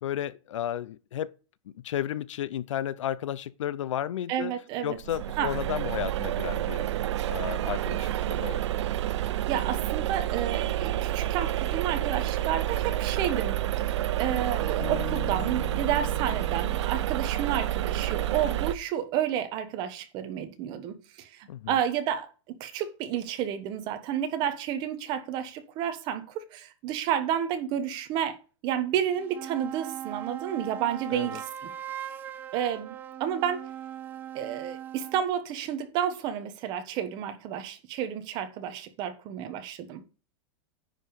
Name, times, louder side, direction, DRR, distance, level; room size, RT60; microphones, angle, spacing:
voice 1, 0.0-1.3 1.8-4.5 4.8-6.9 7.3-8.6 21.5-21.8 31.1-31.4, left 11 dB, 80° left, 0.7 m, -33 dB
voice 2, 4.3-5.0 5.4-5.5 9.2-28.4 28.6-31.7 32.5-33.7 34.3-40.0, right 9 dB, 30° right, 1.3 m, -31 dB
sound 1, 5.0-18.7, right 13 dB, 65° right, 0.6 m, -29 dB
Bass guitar, 14.8-18.3, left 12 dB, 30° left, 1.5 m, -42 dB
sound 2, 29.1-35.3, right 10 dB, 10° right, 0.4 m, -39 dB
9.9 x 5.2 x 5.0 m
supercardioid pair, 170°, 16 cm